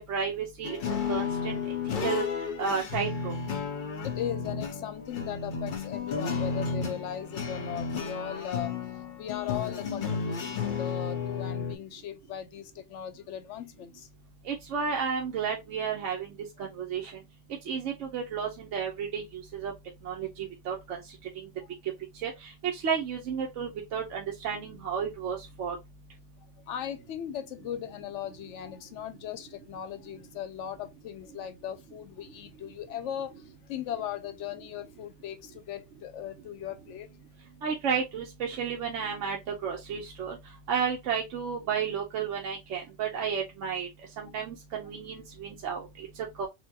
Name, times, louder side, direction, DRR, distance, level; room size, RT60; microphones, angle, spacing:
voice 1, 0.1-0.8 1.1-1.6 2.0-2.2 2.6-3.3 14.5-16.3 16.6-17.1 17.7-19.7 20.0-21.0 22.2-22.3 22.7-25.8 37.6-39.4 39.6-40.4 40.7-43.9 44.2-45.9 46.4-46.5, right 6 dB, 80° right, 1.0 m, -32 dB
sound 1, 0.6-11.8, left 5 dB, 55° left, 0.6 m, -33 dB
voice 2, 3.7-14.1 26.7-37.1, left 10 dB, 75° left, 0.9 m, -38 dB
4.4 x 2.1 x 2.7 m
omnidirectional pair, 1.3 m